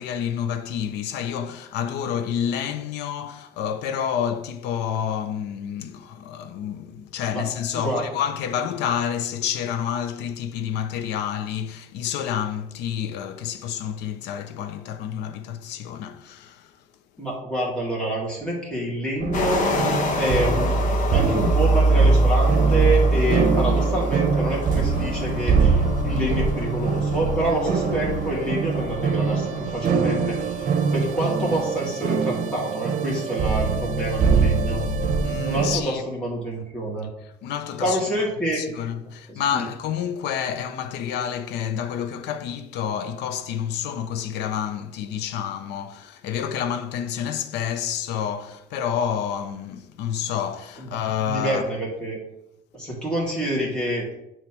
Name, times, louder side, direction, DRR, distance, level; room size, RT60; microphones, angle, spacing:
voice 1, 0.0-16.7 35.2-36.0 37.2-38.0 38.5-51.7, left 8 dB, 85° left, 0.7 m, -29 dB
voice 2, 17.2-19.6 20.2-20.7 21.1-30.7 30.9-34.8 35.4-37.1 37.8-38.6 39.3-39.7 50.8-50.9 51.2-52.2 52.7-54.0, right 1 dB, 5° left, 2.3 m, -27 dB
sound 1, 19.2-35.8, right 4 dB, 55° right, 0.9 m, -22 dB
sound 2, 19.3-31.8, left 3 dB, 50° left, 1.3 m, -32 dB
8.8 x 3.2 x 6.0 m
cardioid pair, 110°, 17 cm